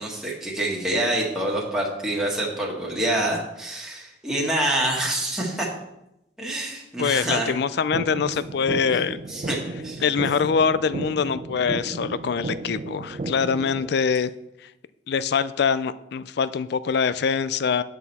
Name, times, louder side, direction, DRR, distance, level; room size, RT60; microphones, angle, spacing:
voice 1, 0.0-5.7 6.4-7.5 9.3-9.6 9.8-10.0, right 1 dB, 5° right, -4 dB, 1.7 m, -26 dB
voice 2, 7.0-9.2 10.0-14.3 15.1-17.8, left 6 dB, 65° left, 15 dB, 0.4 m, -24 dB
sound 1, 7.9-13.9, right 2 dB, 35° right, 0.4 m, -34 dB
9.1 x 6.2 x 4.2 m, 0.86 s
head